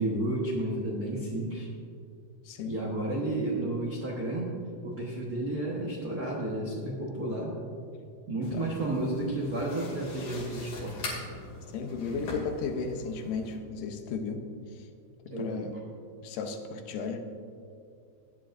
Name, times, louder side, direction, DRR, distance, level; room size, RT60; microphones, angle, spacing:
voice 1, 0.0-1.7 2.6-4.6 4.8-7.5 8.3-11.1 15.3-15.7, right 1 dB, 75° right, -4 dB, 0.8 m, -32 dB
sound 1, 8.4-13.6, left 1 dB, 70° left, 4.2 m, -42 dB
voice 2, 11.7-14.4 15.4-15.7 16.2-17.2, left 5 dB, 90° left, 6 dB, 2.5 m, -34 dB
17.0 x 10.0 x 2.6 m, 2.4 s
omnidirectional pair, 3.8 m